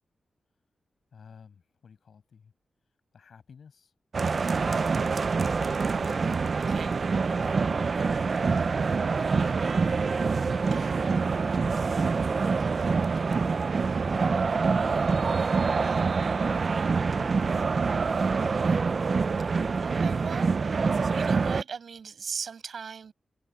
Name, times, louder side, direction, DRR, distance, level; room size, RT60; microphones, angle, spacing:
voice 1, 1.1-2.5 3.1-3.9 14.1-18.6, left 6 dB, 70° left, 6.3 m, -53 dB
sound 1, 4.1-21.6, right 4 dB, 50° right, 0.6 m, -26 dB
voice 2, 4.2-4.6 5.5-5.6 6.6-6.9 10.7-11.0 19.5-23.1, right 6 dB, 70° right, 5.9 m, -40 dB
wide cardioid pair, 95°, 0 cm